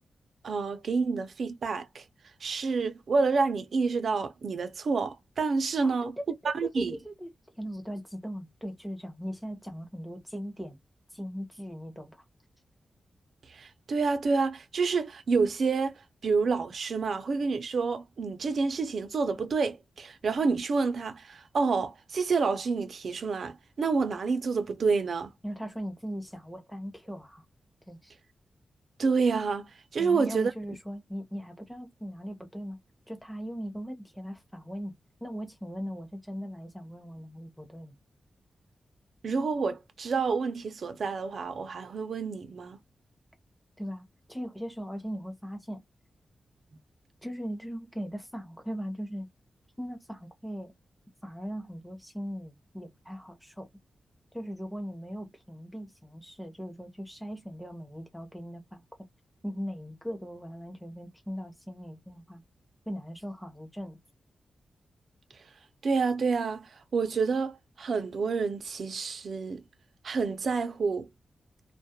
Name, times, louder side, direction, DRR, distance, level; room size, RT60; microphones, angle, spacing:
voice 1, 0.4-2.1 2.4-6.1 6.4-7.0 13.5-25.3 29.0-30.5 39.2-42.8 65.3-65.5 65.8-69.6 70.0-71.1, right 4 dB, 65° right, 0.4 m, -28 dB
voice 2, 6.4-7.3 7.6-10.8 11.1-12.2 25.4-27.4 27.9-28.1 30.0-32.8 33.1-37.9 43.8-45.8 47.2-49.3 49.8-50.7 51.2-53.7 54.3-58.8 59.4-62.4 62.9-64.0, equal, ahead, 0.7 m, -39 dB
2.2 x 2.0 x 2.7 m
wide cardioid pair, 125°, 0 cm